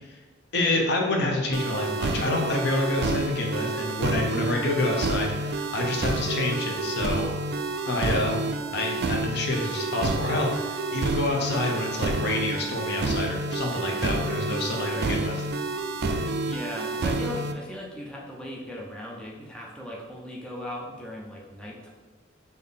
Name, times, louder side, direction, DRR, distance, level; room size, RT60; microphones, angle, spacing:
voice 1, 0.5-7.3 7.9-8.3 8.7-15.4, left 2 dB, 60° left, 1 dB, 0.7 m, -28 dB
sound 1, 1.5-17.5, right 2 dB, 60° right, 0.4 m, -29 dB
voice 2, 14.8-15.1 16.4-21.9, left 1 dB, 5° left, -3 dB, 0.5 m, -38 dB
3.9 x 2.7 x 3.5 m, 1.3 s
head